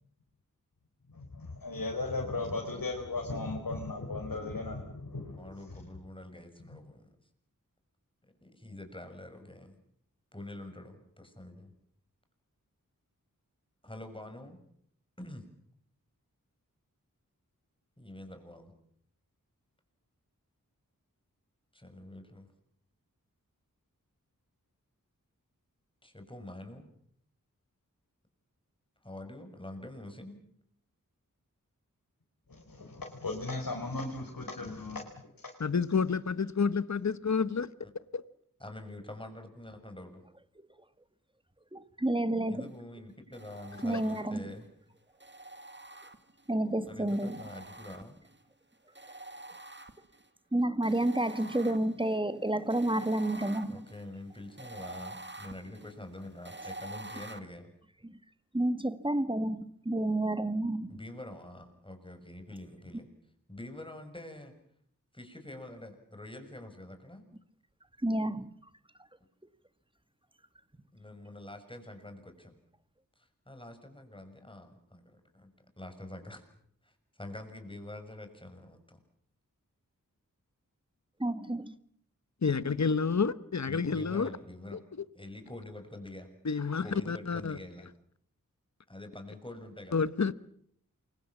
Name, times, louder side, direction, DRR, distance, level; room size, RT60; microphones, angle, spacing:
voice 1, 1.1-5.9 6.7-6.8 32.5-35.5, left 3 dB, 85° left, 4.5 m, -37 dB
voice 2, 5.4-7.1 8.4-9.8 10.3-11.7 13.8-14.6 15.2-15.4 18.0-18.7 21.7-22.5 26.0-26.9 29.0-30.4 38.6-40.2 42.4-44.7 46.9-48.2 53.7-57.6 60.9-63.1 63.5-64.5 65.1-67.2 70.9-72.6 73.2-75.5 75.8-76.4 76.8-79.0 83.7-84.8 85.1-86.3 86.8-87.9 88.9-90.0, left 1 dB, 15° left, 6.6 m, -46 dB
voice 3, 35.6-37.7 38.1-38.2 82.4-84.3 84.7-84.8 86.4-87.6 89.9-90.3, left 5 dB, 55° left, 1.1 m, -29 dB
voice 4, 41.7-42.7 43.8-44.4 46.5-47.4 50.5-53.8 58.5-61.0 68.0-68.5 81.2-81.7, right 1 dB, 15° right, 1.7 m, -30 dB
sound 1, 43.3-44.6 45.2-46.5 47.1-48.4 48.9-50.3 50.8-57.4, right 2 dB, 35° right, 2.1 m, -47 dB
28.0 x 24.0 x 7.3 m
wide cardioid pair, 65°, 33 cm